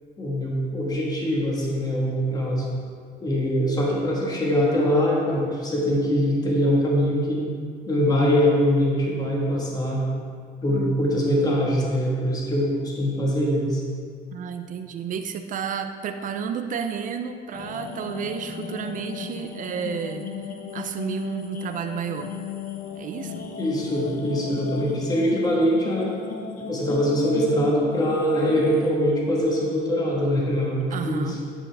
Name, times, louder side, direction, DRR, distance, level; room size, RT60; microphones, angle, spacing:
voice 1, 0.2-2.7 3.2-7.5 7.9-10.0 10.6-13.8 23.6-26.1 26.7-31.4, equal, 20° left, -3 dB, 1.7 m, -23 dB
voice 2, 14.3-20.3 20.7-22.3 23.0-23.5 30.9-31.4, right 7 dB, 50° right, 7 dB, 0.5 m, -31 dB
sound 1, 17.5-28.9, left 6 dB, 55° left, 1.1 m, -36 dB
13.5 x 5.5 x 3.5 m, 2.1 s
cardioid pair, 110°, 17 cm